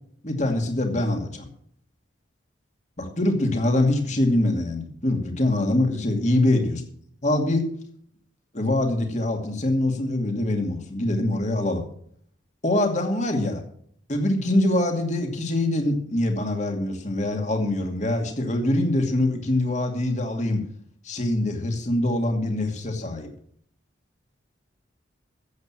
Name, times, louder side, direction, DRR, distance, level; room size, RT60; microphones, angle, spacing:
voice 1, 0.2-1.5 3.0-6.8 7.2-7.7 8.5-11.8 12.6-13.6 14.1-20.6 21.0-23.3, left 1 dB, 40° left, 4 dB, 2.5 m, -24 dB
14.5 x 8.2 x 7.5 m, 0.62 s
head